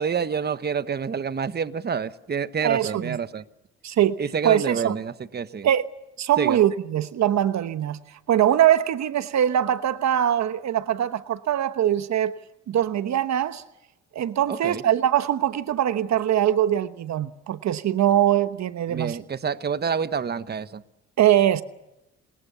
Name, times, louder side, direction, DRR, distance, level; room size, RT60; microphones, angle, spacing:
voice 1, 0.0-3.4 4.2-5.7 6.4-6.6 14.5-14.8 18.9-20.8, right 6 dB, 35° right, 1.1 m, -28 dB
voice 2, 2.6-3.2 3.8-4.1 4.4-4.9 5.6-5.8 6.2-8.0 8.3-12.3 12.7-13.6 14.1-19.2 21.2-21.6, right 11 dB, 65° right, 1.1 m, -22 dB
29.5 x 20.0 x 6.9 m
cardioid pair, 90°, 30 cm